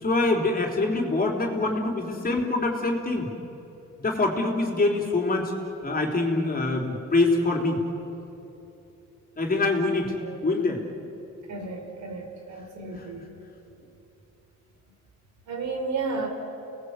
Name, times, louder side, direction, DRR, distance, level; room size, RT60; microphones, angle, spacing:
voice 1, 0.0-3.3 4.0-5.5 5.8-7.8 9.4-10.8, left 2 dB, 30° left, 1 dB, 3.8 m, -25 dB
voice 2, 11.5-13.2 15.5-16.3, right 4 dB, 70° right, 3 dB, 4.5 m, -32 dB
30.0 x 19.0 x 8.3 m, 3.0 s
cardioid pair, 90°, 30 cm